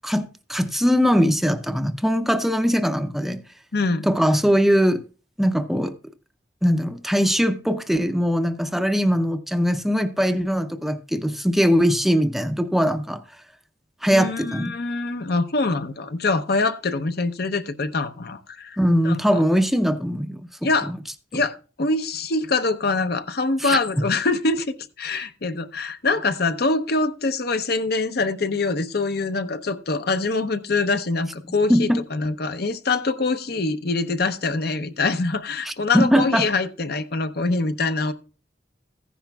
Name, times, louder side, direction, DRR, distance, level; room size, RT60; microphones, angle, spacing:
voice 1, 0.0-3.4 4.1-5.0 5.4-5.9 6.6-13.2 14.0-14.7 18.8-20.5 20.9-21.0 21.3-21.4 23.6-23.8 31.7-32.0 35.6-36.5, equal, ahead, 0.5 m, -21 dB
voice 2, 3.7-4.1 14.1-18.8 19.0-19.4 20.6-20.9 21.3-24.7 25.0-38.1, left 3 dB, 60° left, 0.7 m, -24 dB
15.0 x 10.0 x 2.3 m
head